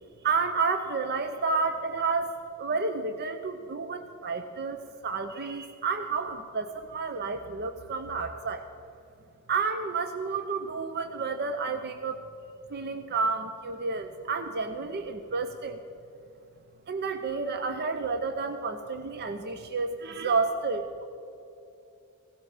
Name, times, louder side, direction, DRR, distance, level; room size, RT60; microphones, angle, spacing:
voice 1, 0.2-2.3 2.6-4.8 5.0-8.6 9.5-12.2 12.7-15.8 16.9-21.0, right 4 dB, 45° right, 8 dB, 0.7 m, -30 dB
16.5 x 13.0 x 5.0 m, 2.9 s
head